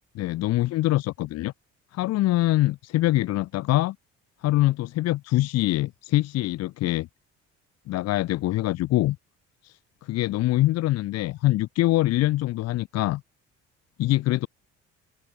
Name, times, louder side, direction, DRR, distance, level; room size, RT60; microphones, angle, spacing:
voice 1, 0.1-1.5 1.9-4.0 4.4-7.1 7.9-9.2 9.6-13.2 14.0-14.5, left 16 dB, 50° left, 0.5 m, -24 dB
open air
hypercardioid pair, 55°, 33 cm